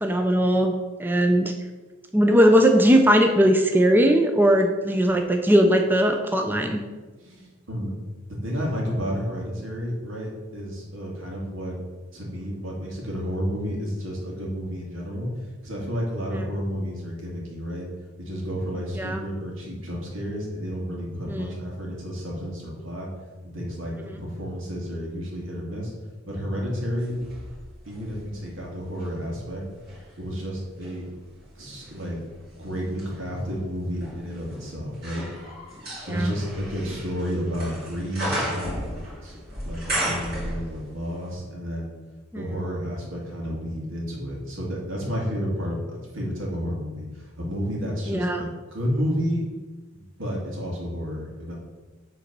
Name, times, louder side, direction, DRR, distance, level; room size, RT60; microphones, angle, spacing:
voice 1, 0.0-0.7 1.0-1.5 2.1-6.8 16.3-16.5 19.0-19.2 21.3-21.5 36.1-36.3 42.3-42.4 48.1-48.4, equal, 10° right, 4 dB, 0.4 m, -19 dB
voice 2, 7.2-7.9 8.4-11.8 12.1-15.3 15.6-17.9 18.2-23.1 23.4-25.9 26.3-27.1 27.9-29.6 30.2-31.0 31.6-32.2 32.6-35.2 36.1-39.4 39.6-41.9 42.3-49.4 49.9-51.5, equal, 80° right, -2 dB, 2.4 m, -31 dB
sound 1, 27.0-29.2 29.7-41.0 41.3-41.4, right 1 dB, 50° right, 2.7 m, -35 dB
8.0 x 3.9 x 6.0 m, 1.3 s
head